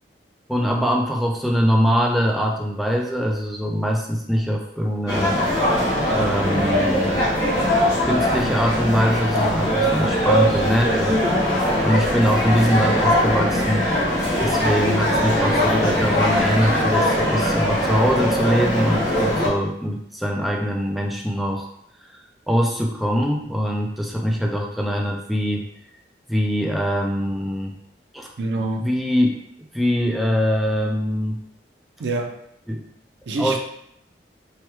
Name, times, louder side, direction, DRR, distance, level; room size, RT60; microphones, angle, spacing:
voice 1, 0.5-5.4 5.9-7.2 8.0-11.2 11.8-13.9 14.4-21.7 22.5-25.6 26.3-27.7 28.1-28.3 28.8-29.4 29.7-31.4 32.7-32.8 33.4-33.6, equal, ahead, -1 dB, 0.3 m, -22 dB
sound 1, 5.1-19.5, equal, 20° left, 0.8 m, -21 dB
voice 2, 28.4-28.9 32.0-32.4 33.3-33.6, right 2 dB, 80° right, 3 dB, 0.5 m, -25 dB
3.2 x 2.2 x 2.9 m, 0.71 s
head